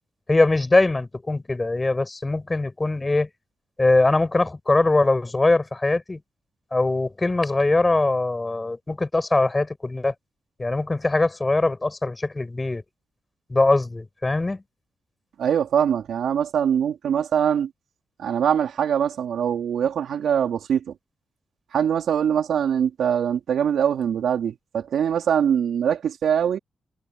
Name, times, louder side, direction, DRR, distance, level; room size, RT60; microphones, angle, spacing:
voice 1, 0.3-3.3 3.8-6.2 6.7-10.1 10.6-12.8 13.5-14.6, left 2 dB, 15° left, 7.5 m, -21 dB
voice 2, 15.4-17.7 18.2-20.8 21.7-26.6, right 8 dB, 70° right, 4.2 m, -23 dB
wide cardioid pair, 150°, 0 cm